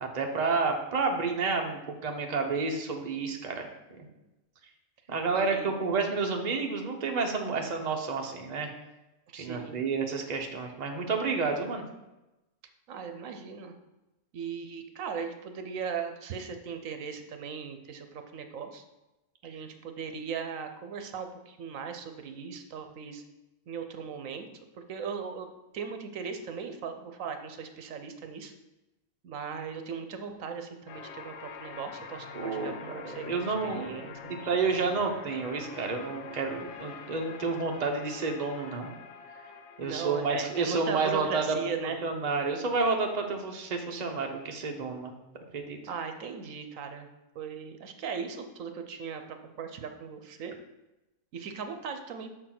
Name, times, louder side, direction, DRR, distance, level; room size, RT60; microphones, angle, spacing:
voice 1, 0.0-3.7 4.0-4.1 5.1-8.7 9.4-11.8 32.3-34.0 34.3-38.9 39.8-41.6 41.8-45.1 45.5-45.8, right 4 dB, 35° right, 2 dB, 0.9 m, -30 dB
voice 2, 5.3-5.7 9.3-9.8 12.9-13.7 14.3-18.8 19.4-23.2 23.7-24.5 24.9-25.5 25.7-28.5 29.2-34.1 39.8-42.0 45.9-47.1 47.3-50.5 51.3-52.3, right 6 dB, 75° right, 7 dB, 1.1 m, -38 dB
sound 1, 30.9-41.1, left 6 dB, 60° left, 0.9 m, -45 dB
6.3 x 4.6 x 5.8 m, 0.99 s
omnidirectional pair, 1.4 m